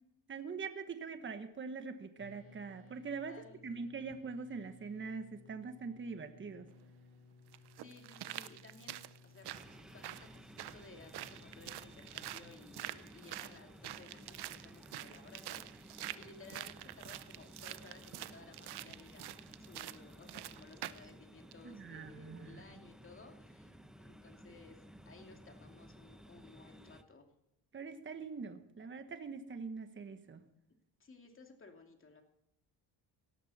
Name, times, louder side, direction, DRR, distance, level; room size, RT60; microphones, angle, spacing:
voice 1, 0.3-3.3 3.6-6.7 21.6-22.6 27.7-30.4, right 5 dB, 30° right, 8 dB, 1.3 m, -43 dB
sound 1, 2.2-12.4, left 4 dB, 55° left, 2.9 m, -60 dB
voice 2, 3.3-3.9 7.5-9.5 9.9-27.3 31.0-32.2, left 4 dB, 30° left, 3 dB, 2.6 m, -58 dB
sound 2, 6.7-6.8 7.5-21.1 21.5-21.6, right 14 dB, 70° right, 0.7 m, -47 dB
sound 3, 9.4-27.0, equal, ahead, 0.7 m, -56 dB
17.5 x 13.0 x 4.3 m, 0.81 s
cardioid pair, 125°, 41 cm